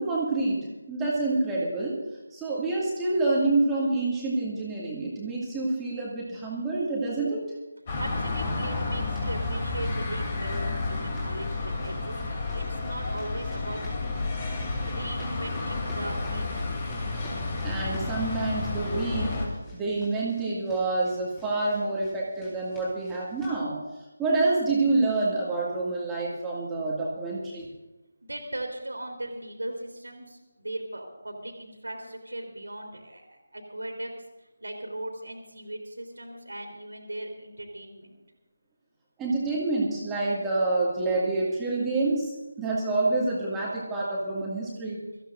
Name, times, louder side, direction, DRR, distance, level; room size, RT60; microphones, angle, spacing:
voice 1, 0.0-2.0 2.3-7.5 17.6-23.8 24.2-27.7 39.2-45.0, right 2 dB, 10° right, -6 dB, 2.2 m, -27 dB
sound 1, 7.9-19.5, left 3 dB, 25° left, 3.0 m, -31 dB
voice 2, 8.0-14.2 14.8-16.5 28.2-34.1 34.4-38.2, right 1 dB, 70° right, 1 dB, 3.1 m, -38 dB
sound 2, 9.0-23.6, left 1 dB, 10° left, 4.1 m, -49 dB
24.5 x 15.0 x 2.6 m, 1.1 s
figure-of-eight pair, 155°, 0 cm